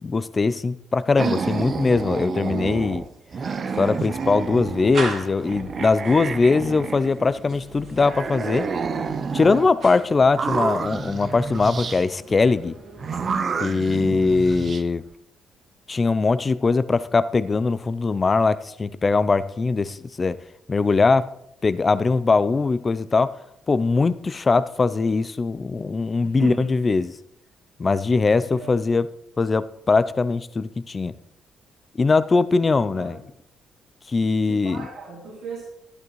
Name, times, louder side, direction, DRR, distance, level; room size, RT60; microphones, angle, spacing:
voice 1, 0.0-3.0 3.8-8.7 9.3-12.8 13.6-15.0 15.9-20.4 20.7-21.3 21.6-23.4 23.7-27.1 27.8-29.1 29.4-31.1 31.9-33.1 34.1-34.9, left 4 dB, 30° left, 0.5 m, -21 dB
sound 1, 1.2-5.1 5.4-7.5 8.0-9.7 10.2-12.0 13.0-14.8, right 5 dB, 45° right, 0.6 m, -29 dB
sound 2, 3.5-13.7, right 3 dB, 60° right, 2.0 m, -40 dB
voice 2, 26.2-26.7 28.4-28.8 32.9-33.3 34.4-35.6, right 6 dB, 80° right, 2.9 m, -37 dB
12.0 x 11.0 x 3.2 m
cardioid pair, 90°, 0 cm